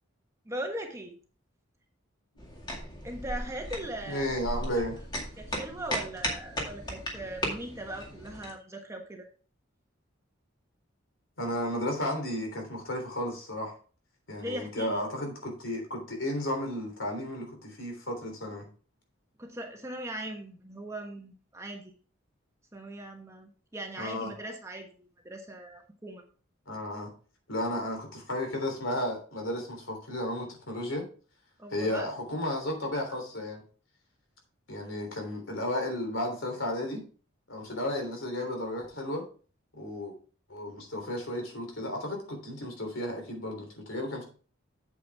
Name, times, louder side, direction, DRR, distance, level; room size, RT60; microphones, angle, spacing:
voice 1, 0.4-1.1 3.0-4.4 5.4-9.3 14.4-15.0 19.4-21.9 22.7-26.2 31.6-32.0, right 1 dB, 15° right, 2 dB, 1.2 m, -39 dB
sound 1, 2.4-8.5, equal, 20° left, 2.1 m, -36 dB
voice 2, 4.1-5.0 11.4-13.7 14.3-18.7 24.0-24.3 26.7-27.1 27.5-31.0 31.7-33.6 34.7-37.0 37.5-39.2 39.7-40.1 40.5-44.2, left 1 dB, 70° left, 3 dB, 3.4 m, -33 dB
8.5 x 7.9 x 3.5 m, 0.39 s
head